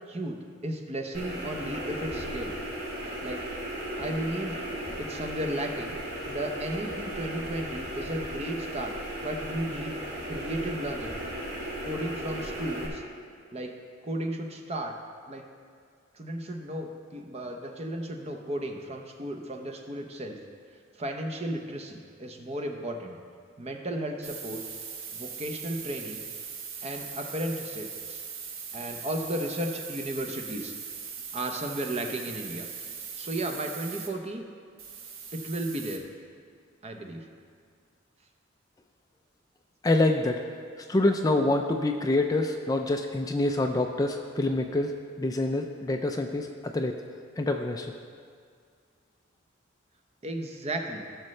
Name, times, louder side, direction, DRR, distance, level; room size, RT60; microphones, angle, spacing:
voice 1, 0.1-2.6 3.2-3.5 4.0-4.6 5.0-6.0 6.3-10.0 10.3-11.2 11.8-13.0 13.5-13.7 14.0-15.0 15.3-15.5 16.1-20.4 20.9-23.2 23.6-24.6 25.1-26.2 26.8-28.2 28.7-30.7 31.3-32.7 33.1-34.4 35.3-36.0 36.8-37.3 50.2-51.0, right 1 dB, 30° right, 4 dB, 0.8 m, -34 dB
sound 1, 1.1-12.9, right 1 dB, 50° right, 2.3 m, -36 dB
sound 2, 24.2-34.1 34.8-36.0, right 6 dB, 85° right, 1.1 m, -40 dB
voice 2, 39.8-40.4 40.8-47.0 47.4-47.9, left 2 dB, 20° left, 4 dB, 0.4 m, -26 dB
16.0 x 6.5 x 3.2 m, 2.1 s
head